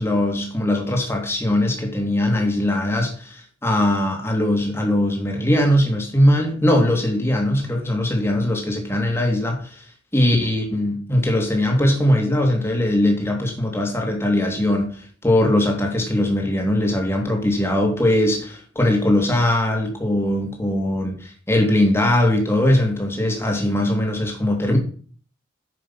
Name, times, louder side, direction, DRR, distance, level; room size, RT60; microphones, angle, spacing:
voice 1, 0.0-9.8 10.1-24.8, left 1 dB, 10° left, 3.0 m, -20 dB
10.5 x 8.3 x 5.8 m
head